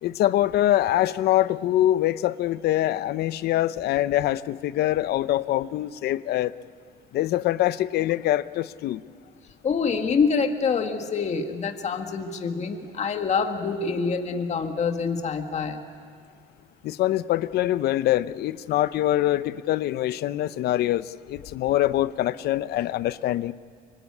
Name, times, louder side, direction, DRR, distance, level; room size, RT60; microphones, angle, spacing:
voice 1, 0.0-6.5 7.1-9.0 16.8-23.5, left 13 dB, 70° left, 16 dB, 0.7 m, -24 dB
voice 2, 9.6-15.8, left 5 dB, 40° left, 5 dB, 1.9 m, -26 dB
25.0 x 24.0 x 9.7 m, 2.1 s
cardioid pair, 110°, 17 cm